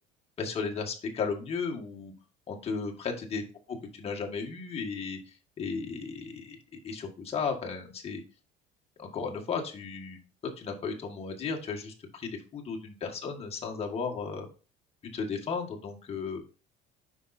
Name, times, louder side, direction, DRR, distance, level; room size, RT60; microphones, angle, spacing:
voice 1, 0.4-2.1 2.5-3.4 3.9-8.2 9.0-10.2 10.6-14.5 15.1-16.4, left 5 dB, 35° left, 1 dB, 1.7 m, -35 dB
8.9 x 5.5 x 2.7 m, 0.35 s
cardioid pair, 120°, 19 cm